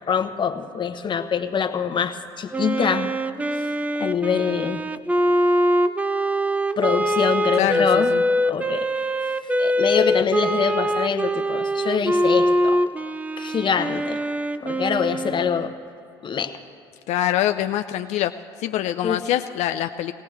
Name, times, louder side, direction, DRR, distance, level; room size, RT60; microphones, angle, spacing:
voice 1, 0.1-3.1 4.0-4.8 6.8-8.1 8.5-8.9 9.6-12.8 13.4-14.2 14.6-15.7 16.2-16.6 19.0-19.2, left 7 dB, 35° left, 8 dB, 0.9 m, -24 dB
Wind instrument woodwind instrument, 2.5-15.9, equal, 10° right, 0.5 m, -23 dB
voice 2, 7.6-8.2 17.1-18.3 18.6-20.1, left 12 dB, 60° left, 8 dB, 0.4 m, -24 dB
19.0 x 17.5 x 3.3 m, 2.3 s
hypercardioid pair, 70°, 13 cm